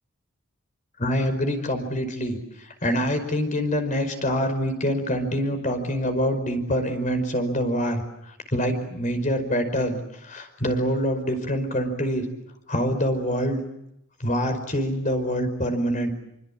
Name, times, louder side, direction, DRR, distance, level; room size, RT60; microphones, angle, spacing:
voice 1, 1.0-12.2 12.7-13.6 14.2-16.1, equal, 35° left, 7 dB, 5.2 m, -25 dB
27.5 x 25.0 x 8.7 m, 0.83 s
head